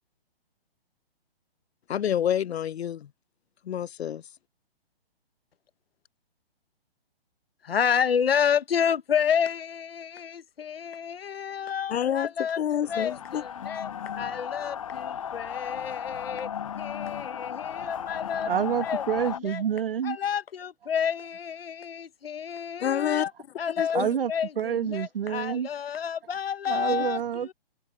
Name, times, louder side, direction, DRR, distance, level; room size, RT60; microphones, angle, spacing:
voice 1, 1.9-3.1 3.6-4.2 11.9-13.4 22.8-23.3 23.8-24.1 27.0-27.1, left 10 dB, 90° left, 0.6 m, -28 dB
voice 2, 7.6-12.6 12.9-13.9 14.1-16.5 16.8-18.5 18.8-19.0 19.4-19.6 20.0-23.3 23.6-24.0 24.3-27.2 27.5-27.6, left 8 dB, 70° left, 1.3 m, -29 dB
sound 1, 12.8-19.4, left 8 dB, 35° left, 0.6 m, -35 dB
voice 3, 18.4-20.2 23.9-25.7 26.7-27.5, right 8 dB, 65° right, 1.7 m, -28 dB
hypercardioid pair, 165°, 31 cm